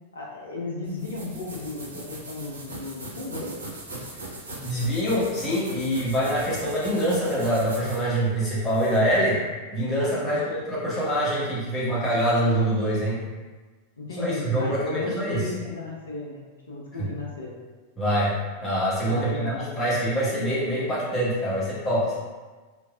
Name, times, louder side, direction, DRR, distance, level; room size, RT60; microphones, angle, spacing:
voice 1, 0.1-3.6 10.2-10.5 14.0-17.5 19.0-20.0, left 3 dB, 70° left, -3 dB, 0.5 m, -35 dB
sound 1, 0.8-9.1, right 2 dB, 70° right, 0.5 m, -40 dB
voice 2, 4.6-9.4 9.7-13.2 14.2-15.4 18.0-22.2, equal, 20° left, -7 dB, 1.0 m, -25 dB
3.1 x 2.5 x 2.2 m, 1.3 s
figure-of-eight pair, 90°, 0 cm